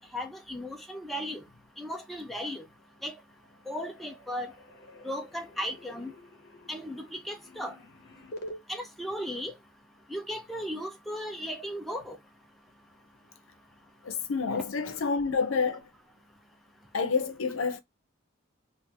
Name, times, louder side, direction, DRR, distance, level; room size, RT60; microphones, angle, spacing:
voice 1, 0.1-1.4 1.8-2.6 3.0-3.1 3.7-4.5 5.0-6.1 6.7-7.8 8.7-9.5 10.1-12.2 14.5-14.6, equal, ahead, 0.5 m, -36 dB
sound 1, 2.7-3.2 3.4-8.6, equal, 50° left, 0.8 m, -48 dB
voice 2, 14.0-15.9 16.9-17.8, left 5 dB, 80° left, 0.6 m, -28 dB
2.8 x 2.5 x 3.3 m
head